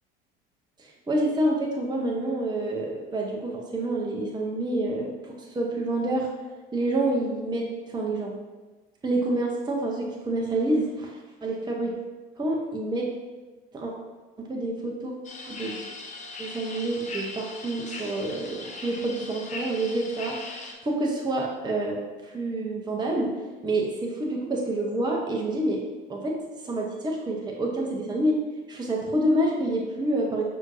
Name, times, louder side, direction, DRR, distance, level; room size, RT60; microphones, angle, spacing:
voice 1, 0.8-6.3 6.7-8.4 9.0-12.0 12.4-13.1 13.7-13.9 14.4-15.1 15.4-15.8 16.4-20.4 20.8-23.3 23.6-25.8 26.1-26.4 26.6-28.4 28.7-30.4, right 1 dB, 15° right, -1 dB, 0.7 m, -28 dB
sound 1, 15.2-20.7, left 3 dB, 25° left, 0.6 m, -39 dB
6.0 x 2.7 x 2.7 m, 1.2 s
hypercardioid pair, 65°, 29 cm